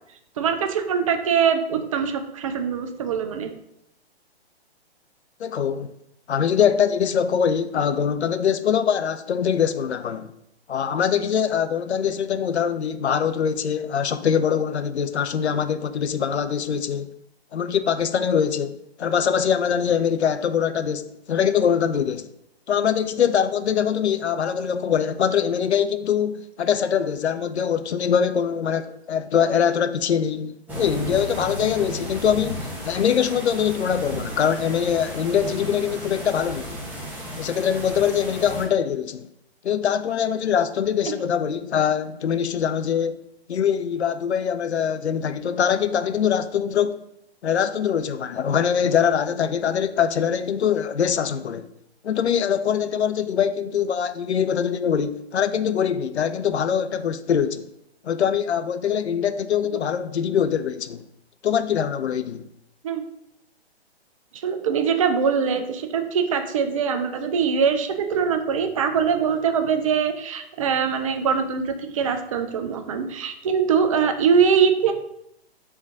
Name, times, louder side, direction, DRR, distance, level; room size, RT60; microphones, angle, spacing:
voice 1, 0.4-3.5 62.8-63.0 64.3-74.9, right 6 dB, 35° right, 0.4 m, -22 dB
voice 2, 5.4-5.9 6.3-10.3 10.7-17.1 17.5-22.3 22.7-36.8 37.4-39.3 39.6-43.2 43.5-47.0 47.4-51.7 52.0-57.7 58.0-61.0 61.4-62.4, left 8 dB, 85° left, 0.5 m, -23 dB
sound 1, 30.7-38.7, equal, 5° right, 1.0 m, -34 dB
3.6 x 3.3 x 4.0 m
figure-of-eight pair, 125°, 32 cm